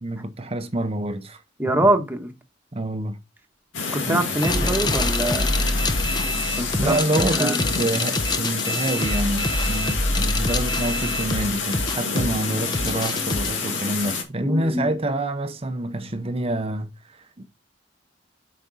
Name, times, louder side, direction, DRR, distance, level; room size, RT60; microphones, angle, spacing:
voice 1, 0.0-1.4 1.7-1.8 2.7-3.2 6.8-17.4, right 1 dB, 30° right, 0.8 m, -27 dB
voice 2, 1.6-2.3 3.9-5.7 6.5-6.9 7.2-7.6 14.4-14.9, right 1 dB, 10° right, 1.4 m, -24 dB
sound 1, 3.7-14.2, left 4 dB, 80° left, 2.1 m, -28 dB
sound 2, 4.4-13.5, left 1 dB, 25° left, 0.8 m, -25 dB
8.2 x 5.1 x 4.1 m
head